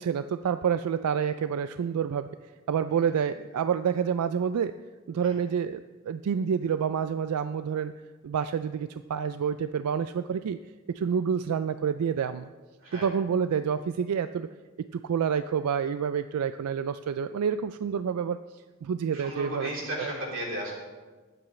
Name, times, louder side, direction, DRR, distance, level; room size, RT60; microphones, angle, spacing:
voice 1, 0.0-2.4 2.7-4.8 5.1-7.9 8.2-10.6 10.9-12.5 12.9-14.5 14.9-18.4 18.8-19.7 20.0-20.1, right 7 dB, 90° right, 11 dB, 0.3 m, -28 dB
voice 2, 19.1-20.7, right 1 dB, 60° right, -4 dB, 3.5 m, -34 dB
21.0 x 7.9 x 3.2 m, 1.3 s
head